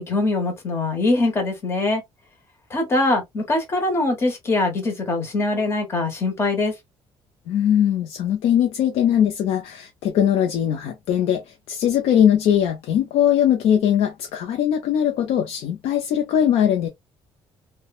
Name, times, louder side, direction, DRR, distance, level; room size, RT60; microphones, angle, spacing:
voice 1, 0.0-2.0 2.7-6.7, left 2 dB, 25° left, 1.0 m, -22 dB
voice 2, 7.5-16.9, left 9 dB, 75° left, 0.6 m, -20 dB
3.0 x 2.2 x 2.4 m
cardioid pair, 170°, 10 cm